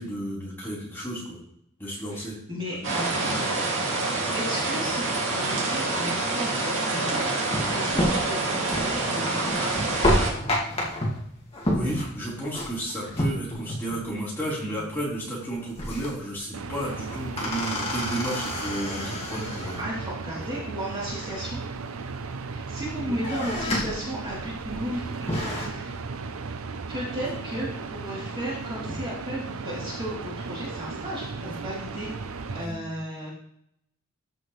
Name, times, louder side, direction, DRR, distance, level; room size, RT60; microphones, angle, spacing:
voice 1, 0.0-1.4 1.8-2.4 2.7-2.9 3.2-3.6 11.7-19.8 20.3-20.5 32.5-32.8, right 1 dB, 10° left, -8 dB, 4.3 m, -33 dB
voice 2, 2.5-3.4 4.3-9.7 19.8-21.6 22.5-25.9 26.9-33.3, equal, 25° right, -8 dB, 3.3 m, -35 dB
sound 1, 2.8-10.3, right 2 dB, 65° right, 2.4 m, -27 dB
sound 2, 7.4-14.1 14.3-14.4 14.8-15.1 15.4-16.3 16.8-19.9 21.1-21.9 22.4-22.8 23.1-24.1 24.5-24.6 25.0-25.7, left 1 dB, 30° left, 2.1 m, -29 dB
sound 3, 16.5-32.7, right 4 dB, 85° right, 0.7 m, -36 dB
14.5 x 6.0 x 3.3 m, 0.72 s
head